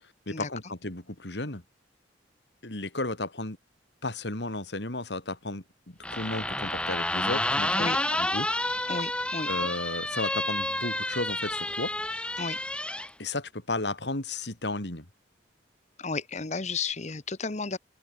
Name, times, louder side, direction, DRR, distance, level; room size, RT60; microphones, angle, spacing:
voice 1, 0.3-1.6 2.6-3.6 4.0-8.6 9.5-11.9 13.2-15.1, left 2 dB, 70° left, 3.0 m, -34 dB
sound 1, 6.0-13.1, left 1 dB, 5° left, 2.4 m, -30 dB
voice 2, 8.9-9.5 12.4-12.6 16.0-17.8, left 4 dB, 40° left, 1.1 m, -33 dB
open air
head